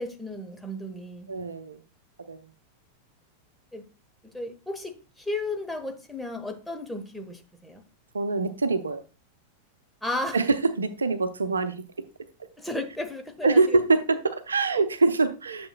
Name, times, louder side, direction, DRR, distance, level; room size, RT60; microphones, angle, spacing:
voice 1, 0.0-1.3 3.7-3.9 4.2-7.8 10.0-10.4 12.6-13.6, left 1 dB, 5° left, 1.3 m, -34 dB
voice 2, 1.3-1.8 2.3-2.4 8.1-9.0 10.3-11.7 13.4-15.7, right 3 dB, 75° right, 0.7 m, -24 dB
10.5 x 7.0 x 2.3 m
figure-of-eight pair, 90°, 0 cm